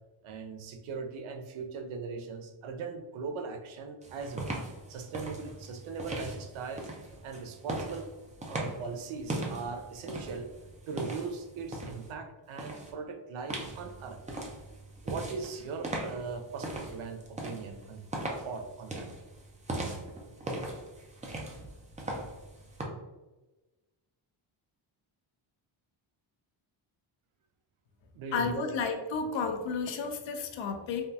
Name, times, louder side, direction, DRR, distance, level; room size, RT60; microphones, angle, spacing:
voice 1, 0.2-4.5 4.9-6.9 7.2-8.1 8.5-10.5 10.9-14.2 15.0-18.0 18.4-19.1 28.1-28.8, right 4 dB, 75° right, 6 dB, 0.6 m, -39 dB
sound 1, 4.0-12.1 12.6-12.9 13.5-22.8, right 2 dB, 15° right, 0.4 m, -39 dB
voice 2, 28.3-31.1, left 5 dB, 65° left, 6 dB, 0.6 m, -32 dB
3.5 x 2.3 x 2.6 m, 1.1 s
cardioid pair, 115°, 49 cm